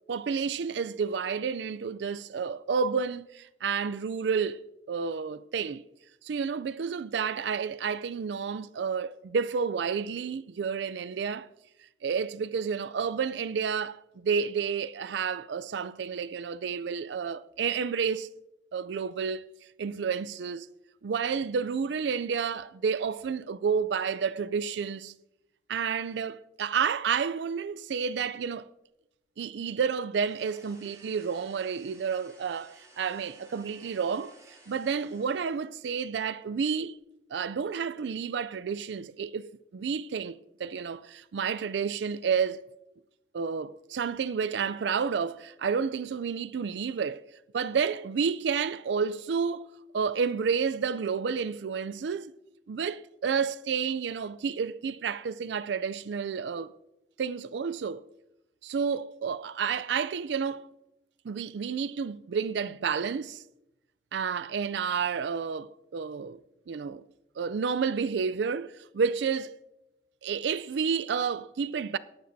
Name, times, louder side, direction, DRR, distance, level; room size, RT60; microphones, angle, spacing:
voice 1, 0.1-4.6 4.9-5.9 6.2-11.5 12.0-18.3 18.7-19.5 19.8-20.7 21.0-25.1 25.7-28.7 29.4-37.0 37.3-42.6 43.3-47.2 47.5-49.7 49.9-52.3 52.7-56.7 57.2-58.0 58.6-60.7 61.2-63.4 64.1-66.4 66.7-67.0 67.4-69.6 70.2-72.0, right 6 dB, 85° right, 0.4 m, -30 dB
sound 1, 30.2-35.8, right 2 dB, 20° right, 5.1 m, -57 dB
17.5 x 11.5 x 2.7 m
head